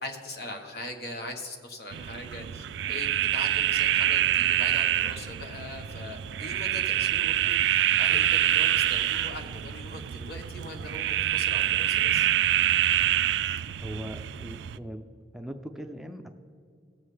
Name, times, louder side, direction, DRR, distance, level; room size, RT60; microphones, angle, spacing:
voice 1, 0.0-12.3, left 2 dB, 65° left, 4 dB, 1.3 m, -41 dB
sound 1, 1.9-14.8, right 12 dB, 75° right, 0.3 m, -26 dB
voice 2, 13.7-15.1 15.3-16.3, right 1 dB, ahead, 5 dB, 0.4 m, -39 dB
18.0 x 7.3 x 3.3 m, 2.3 s
head